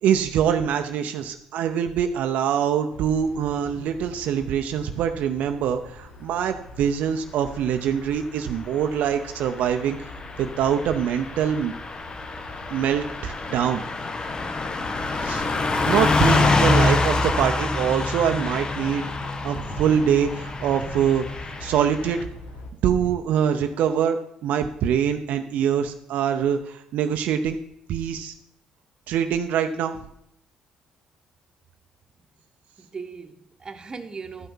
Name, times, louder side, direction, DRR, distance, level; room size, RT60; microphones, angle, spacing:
voice 1, 0.0-10.1 10.4-11.7 12.7-13.8 15.2-15.5 15.9-19.1 19.4-21.2 21.6-22.2 22.8-27.6 27.9-28.3 29.1-30.0, right 8 dB, 75° right, 0.6 m, -24 dB
sound 1, 2.9-22.7, left 2 dB, 85° left, 1.7 m, -44 dB
Car passing by / Truck, 9.2-22.2, left 3 dB, 30° left, 1.0 m, -26 dB
voice 2, 32.8-34.5, right 5 dB, 30° right, 1.1 m, -39 dB
12.0 x 5.7 x 5.5 m
supercardioid pair, 80°, 3 cm